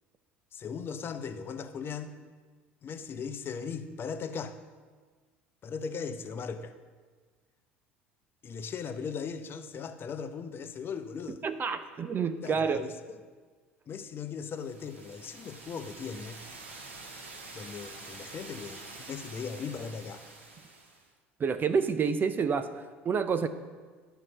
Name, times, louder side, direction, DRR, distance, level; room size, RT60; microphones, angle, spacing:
voice 1, 0.5-2.1 2.8-4.6 5.6-6.7 8.4-11.4 12.4-13.2 13.9-16.4 17.5-20.2, left 6 dB, 35° left, 9 dB, 0.7 m, -38 dB
voice 2, 11.4-12.9 21.4-23.5, right 6 dB, 30° right, 10 dB, 0.5 m, -28 dB
sound 1, 14.5-21.1, right 3 dB, 85° right, 1.4 m, -47 dB
11.0 x 4.6 x 6.5 m, 1.5 s
hypercardioid pair, 70°, 6 cm